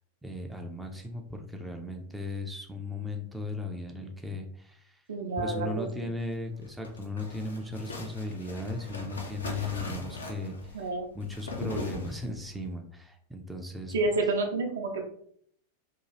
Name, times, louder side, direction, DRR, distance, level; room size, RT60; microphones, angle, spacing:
voice 1, 0.2-5.0 5.4-13.9, left 2 dB, 5° right, 3 dB, 0.4 m, -37 dB
voice 2, 5.1-6.1 10.7-11.1 13.9-15.1, right 2 dB, 65° right, 3 dB, 0.5 m, -29 dB
sound 1, 6.5-12.6, left 2 dB, 75° left, 0.5 m, -40 dB
2.8 x 2.3 x 3.0 m, 0.63 s
figure-of-eight pair, 90°, 0 cm